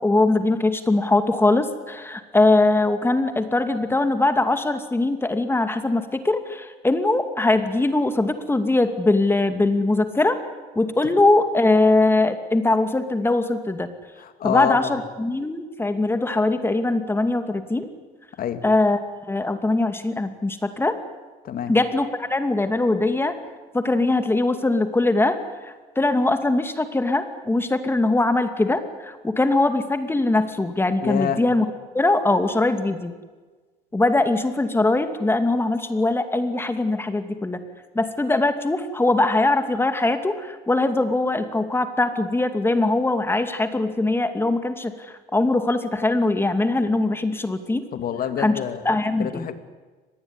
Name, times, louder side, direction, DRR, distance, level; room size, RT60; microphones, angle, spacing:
voice 1, 0.0-10.4 10.8-13.9 14.4-17.9 18.6-19.0 19.3-21.0 21.7-23.3 23.7-31.7 31.9-33.1 33.9-37.6 37.9-47.9 48.4-48.5 48.8-49.5, left 2 dB, 15° left, 8 dB, 2.6 m, -21 dB
voice 2, 14.2-14.9 18.4-18.6 21.4-21.7 31.0-31.4 47.9-48.8 49.2-49.5, left 9 dB, 60° left, 9 dB, 2.5 m, -27 dB
24.5 x 20.0 x 9.9 m, 1.3 s
cardioid pair, 110°, 17 cm